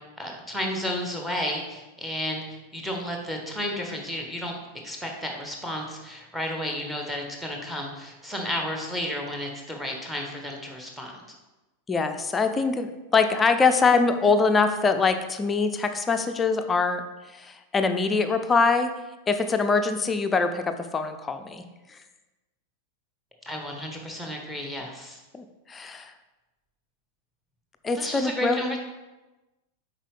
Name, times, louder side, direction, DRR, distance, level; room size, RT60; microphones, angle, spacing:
voice 1, 0.2-4.6 4.8-11.2 23.4-25.2 27.9-28.8, equal, 5° right, 1 dB, 1.2 m, -32 dB
voice 2, 11.9-18.9 19.3-21.6 21.9-22.0 25.3-26.1 27.8-28.6, left 4 dB, 15° left, 8 dB, 0.5 m, -23 dB
7.3 x 4.8 x 3.5 m, 1.1 s
figure-of-eight pair, 90°, 0 cm